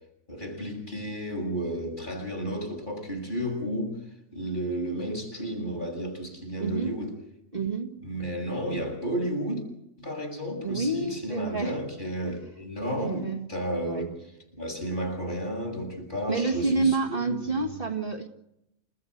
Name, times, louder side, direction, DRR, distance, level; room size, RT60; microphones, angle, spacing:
voice 1, 0.3-4.0 4.3-7.1 8.0-9.6 10.0-14.1 14.5-17.7, equal, 35° left, 8.0 m, -32 dB
voice 2, 6.6-6.9 7.5-8.0 10.6-11.8 12.2-12.3 13.0-13.5 13.8-14.1 16.3-18.3, right 3 dB, 40° right, 2.1 m, -29 dB
29.5 x 14.0 x 8.0 m
omnidirectional pair, 1.4 m